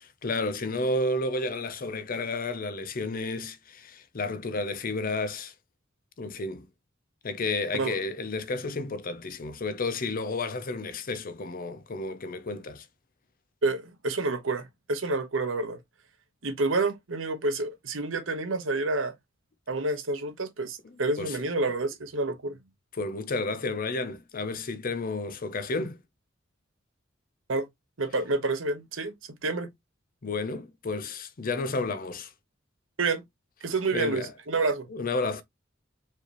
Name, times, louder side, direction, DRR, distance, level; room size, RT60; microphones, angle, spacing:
voice 1, 0.2-5.5 6.2-6.7 7.2-12.9 21.2-21.4 22.9-26.0 30.2-32.3 33.9-34.3 34.9-35.4, left 2 dB, 45° left, 0.6 m, -31 dB
voice 2, 13.6-15.8 16.4-19.1 19.7-22.6 27.5-27.7 28.0-29.1 29.4-29.7 33.0-33.2 33.6-34.9, right 3 dB, 85° right, 1.1 m, -28 dB
4.6 x 3.3 x 2.9 m
head